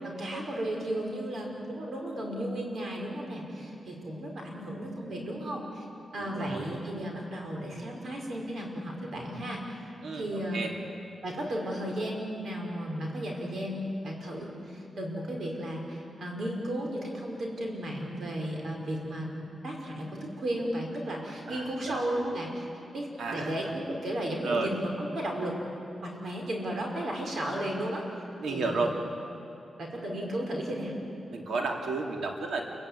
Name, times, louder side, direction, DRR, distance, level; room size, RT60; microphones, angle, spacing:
voice 1, 0.0-5.9 6.1-9.8 10.1-10.6 11.2-22.7 22.9-25.6 26.0-28.0 28.5-28.9 29.8-30.9, right 1 dB, 60° right, 0 dB, 5.1 m, -34 dB
voice 2, 6.2-6.7 10.0-10.7 21.5-22.2 23.2-23.7 24.4-24.7 28.4-28.9 31.3-32.6, right 3 dB, 85° right, 2 dB, 2.9 m, -33 dB
28.5 x 16.0 x 9.8 m, 2.9 s
wide cardioid pair, 115°, 0 cm